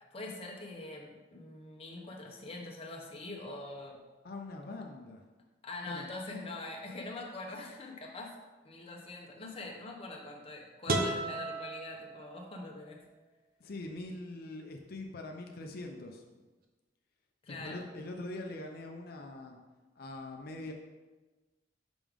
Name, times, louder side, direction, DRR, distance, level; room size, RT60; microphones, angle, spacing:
voice 1, 0.1-4.0 5.6-8.3 8.6-13.0 17.4-17.8, left 2 dB, 30° left, 0 dB, 0.9 m, -43 dB
voice 2, 4.2-5.2 5.8-6.1 13.6-16.2 17.5-19.6 20.0-20.7, left 2 dB, 55° left, 3 dB, 0.6 m, -43 dB
sound 1, 10.9-12.8, right 2 dB, 55° right, 0.7 m, -34 dB
6.0 x 5.4 x 3.5 m, 1.2 s
head